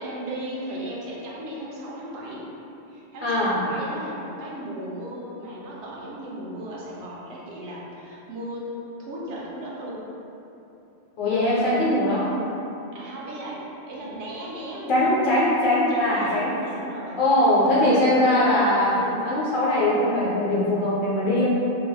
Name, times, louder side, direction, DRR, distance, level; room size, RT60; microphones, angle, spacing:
voice 1, 0.0-2.5 2.9-8.7 9.0-10.0 12.9-15.4 15.9-17.2, right 1 dB, 75° right, -5 dB, 0.9 m, -36 dB
voice 2, 3.2-3.6 11.2-12.3 14.9-16.5 17.2-21.5, left 1 dB, 50° left, -9 dB, 0.7 m, -21 dB
2.8 x 2.0 x 3.9 m, 2.9 s
omnidirectional pair, 1.2 m